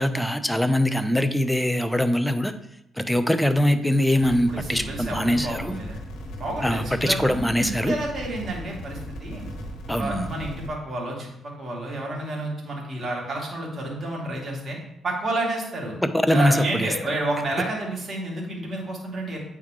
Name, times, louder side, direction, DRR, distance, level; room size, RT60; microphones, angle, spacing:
voice 1, 0.0-2.5 3.0-5.8 6.6-7.9 9.9-10.3 16.3-16.9, equal, 5° left, 9 dB, 0.6 m, -22 dB
sound 1, 4.2-10.7, equal, 85° left, 1.4 m, -37 dB
voice 2, 4.5-6.0 6.4-7.3 7.6-9.5 10.0-14.8 15.0-15.9 16.3-19.4, right 2 dB, 35° right, -2 dB, 2.5 m, -30 dB
8.7 x 4.6 x 3.7 m, 0.82 s
cardioid pair, 90°, 0 cm